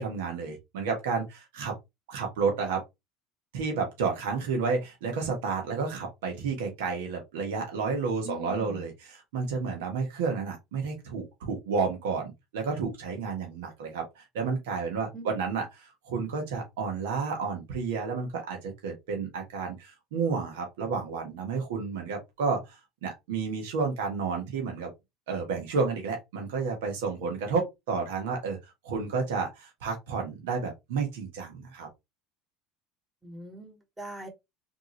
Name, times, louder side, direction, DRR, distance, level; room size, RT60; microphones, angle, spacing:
voice 1, 0.0-1.7 2.1-2.8 3.5-24.9 25.3-31.9, right 5 dB, 85° right, 1.6 m, -31 dB
voice 2, 8.2-8.8 15.1-15.3 33.2-34.3, right 1 dB, 15° right, 2.0 m, -42 dB
3.9 x 3.5 x 3.1 m
supercardioid pair, 105°, 0 cm